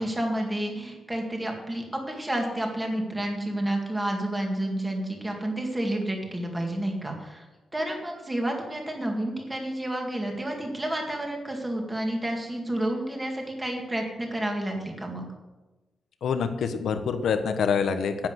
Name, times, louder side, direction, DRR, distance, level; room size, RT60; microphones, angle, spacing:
voice 1, 0.0-7.4 7.7-15.2, right 1 dB, 10° right, 1 dB, 2.1 m, -30 dB
voice 2, 16.2-18.3, left 6 dB, 70° left, 8 dB, 1.2 m, -26 dB
10.5 x 8.7 x 7.9 m, 1.2 s
wide cardioid pair, 175°, 0 cm